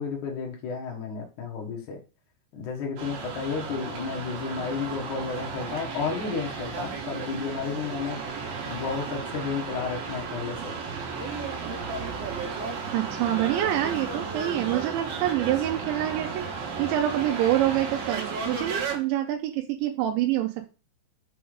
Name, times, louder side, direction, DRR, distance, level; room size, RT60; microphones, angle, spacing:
voice 1, 0.0-2.0 2.5-8.2 8.7-10.8, left 5 dB, 75° left, 0 dB, 1.8 m, -32 dB
sound 1, 3.0-19.0, right 5 dB, 60° right, 2.7 m, -34 dB
voice 2, 12.9-16.4 16.8-20.5, right 12 dB, 80° right, 3 dB, 2.8 m, -26 dB
7.0 x 3.8 x 4.9 m, 0.33 s
omnidirectional pair, 5.6 m